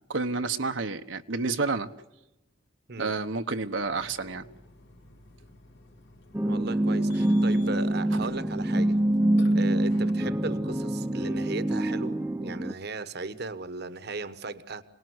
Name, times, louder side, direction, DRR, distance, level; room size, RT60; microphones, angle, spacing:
voice 1, 0.0-1.9 3.0-4.5, right 3 dB, 80° right, 1.1 m, -30 dB
Burping eructation, 3.8-10.1, left 3 dB, 65° left, 3.3 m, -52 dB
sound 1, 6.3-12.7, right 1 dB, 10° right, 0.9 m, -25 dB
voice 2, 6.4-9.0 9.5-14.8, right 3 dB, 55° right, 1.2 m, -37 dB
28.0 x 19.5 x 7.9 m
head